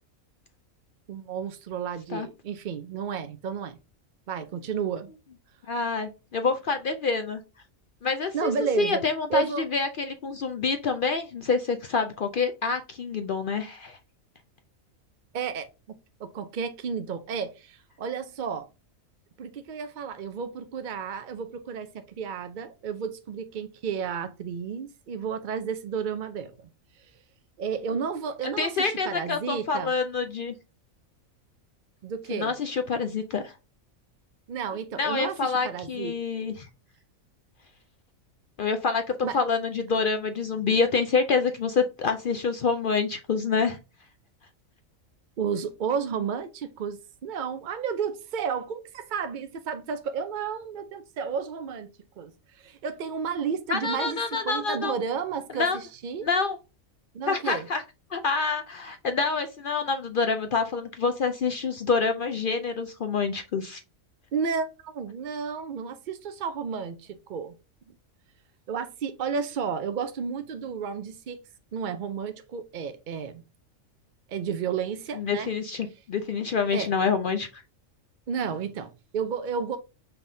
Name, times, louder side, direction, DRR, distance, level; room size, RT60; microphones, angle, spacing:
voice 1, 1.1-3.8 4.3-5.1 8.3-9.0 9.3-9.6 15.3-15.7 16.2-18.7 19.4-26.5 27.0-27.1 27.6-29.9 32.0-32.5 34.5-36.1 39.2-39.4 45.4-56.3 57.1-57.7 64.3-67.6 68.7-71.4 71.7-73.4 74.3-75.5 76.7-76.9 78.3-79.8, right 6 dB, 65° right, 0.5 m, -32 dB
voice 2, 5.7-7.4 8.0-8.5 8.8-14.0 28.6-30.5 32.3-33.5 35.0-36.7 38.6-39.0 39.3-43.8 53.7-55.0 55.5-55.8 56.2-56.6 57.3-57.8 58.1-63.8 75.2-77.5, left 4 dB, 60° left, 0.5 m, -27 dB
5.7 x 3.4 x 2.6 m
omnidirectional pair, 1.4 m